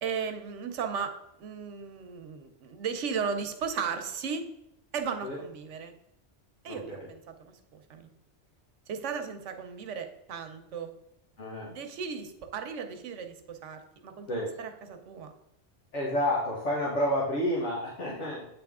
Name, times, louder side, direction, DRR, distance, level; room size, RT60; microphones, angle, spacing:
voice 1, 0.0-1.1 1.4-4.4 4.9-5.9 6.6-8.1 8.9-10.9 11.6-15.3, right 6 dB, 90° right, 7 dB, 1.1 m, -36 dB
voice 2, 6.7-7.1 11.4-11.7 14.3-14.5 15.9-18.5, left 1 dB, 80° left, -6 dB, 1.6 m, -30 dB
8.3 x 3.5 x 3.6 m, 0.82 s
omnidirectional pair, 1.2 m